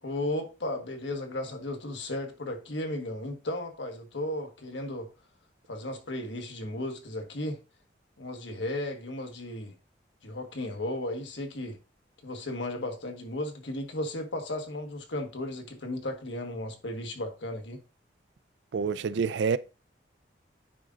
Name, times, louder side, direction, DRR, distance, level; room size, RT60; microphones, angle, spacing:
voice 1, 0.0-5.1 5.7-7.6 8.2-9.7 10.2-11.8 12.2-17.8, left 1 dB, 85° left, 1.4 m, -35 dB
voice 2, 18.7-19.6, right 5 dB, 75° right, 0.4 m, -27 dB
9.4 x 3.7 x 3.8 m
head